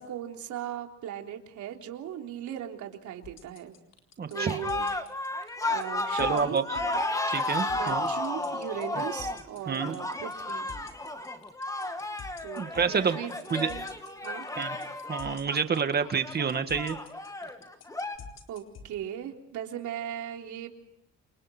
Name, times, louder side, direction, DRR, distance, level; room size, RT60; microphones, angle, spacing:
voice 1, 0.0-3.8 4.3-4.9 5.6-7.0 7.7-10.7 12.4-13.8 14.2-14.5 18.5-20.7, right 10 dB, 80° right, 3 dB, 3.7 m, -38 dB
sound 1, 3.2-18.9, left 6 dB, 60° left, 4.1 m, -47 dB
voice 2, 4.2-4.6 6.1-6.8 7.3-8.1 9.0-9.1 9.7-10.0 12.6-13.2 13.5-13.7 14.6-14.8 15.1-17.0, right 6 dB, 35° right, 8 dB, 1.9 m, -28 dB
sound 2, 4.3-18.2, left 2 dB, 10° left, 1.9 m, -33 dB
29.5 x 28.0 x 4.5 m, 0.78 s
cardioid pair, 155°, 30 cm